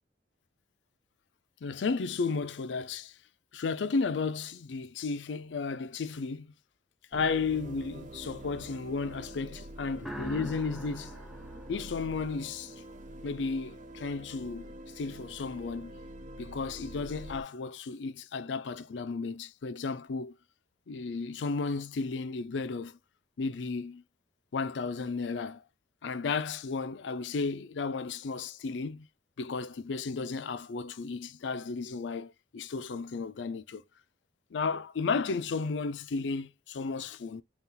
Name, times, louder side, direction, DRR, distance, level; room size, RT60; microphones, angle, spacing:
voice 1, 1.6-3.2 3.5-6.5 7.1-11.1 11.7-12.8 13.2-15.9 16.4-20.4 20.9-23.0 23.4-24.0 24.5-25.6 26.0-29.1 29.4-33.8 34.5-37.4, left 4 dB, 80° left, 0.5 m, -34 dB
sound 1, 7.1-17.4, right 1 dB, 45° right, 0.5 m, -46 dB
sound 2, 10.0-12.7, equal, ahead, 0.5 m, -43 dB
4.1 x 2.4 x 3.8 m
head